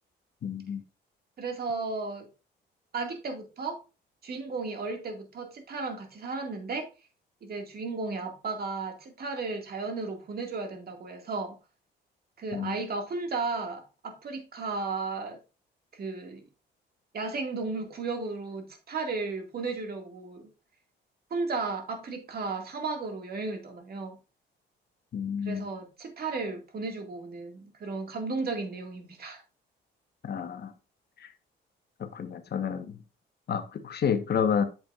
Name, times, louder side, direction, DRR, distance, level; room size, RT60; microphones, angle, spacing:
voice 1, 0.4-0.8 12.5-12.7 25.1-25.6 30.2-30.7 31.2-31.3 32.0-33.0 33.5-34.6, left 7 dB, 55° left, 1.2 m, -30 dB
voice 2, 1.4-2.3 2.9-3.8 4.2-6.9 7.4-11.6 12.4-15.4 15.9-16.4 17.1-20.5 21.3-24.2 25.4-29.4, right 3 dB, 50° right, 2.1 m, -34 dB
8.7 x 7.1 x 2.5 m
cardioid pair, 90°, 20 cm